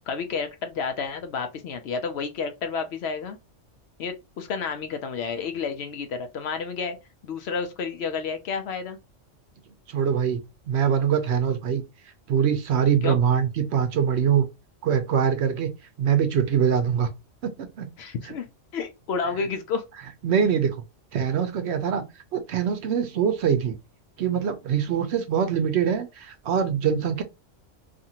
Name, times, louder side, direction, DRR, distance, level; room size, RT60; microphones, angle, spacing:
voice 1, 0.1-3.4 4.0-7.0 7.2-9.0 13.0-13.2 18.0-18.5 18.7-19.8, left 5 dB, 65° left, 0.7 m, -30 dB
voice 2, 9.9-11.8 12.3-14.5 14.8-15.7 16.0-17.1 17.4-17.9 20.2-20.7 21.1-22.0 22.3-23.8 24.2-27.2, right 8 dB, 65° right, 0.8 m, -23 dB
2.6 x 2.4 x 2.8 m
omnidirectional pair, 1.3 m